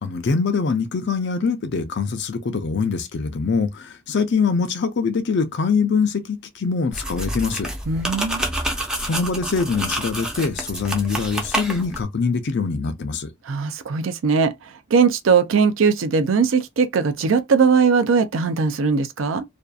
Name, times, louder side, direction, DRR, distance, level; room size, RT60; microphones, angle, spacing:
voice 1, 0.0-7.7 9.0-13.3, left 5 dB, 60° left, 0.5 m, -23 dB
sound 1, 6.9-12.0, right 1 dB, 5° right, 0.5 m, -28 dB
voice 2, 7.9-8.4 13.4-19.4, right 5 dB, 70° right, 0.4 m, -20 dB
2.6 x 2.4 x 2.3 m
head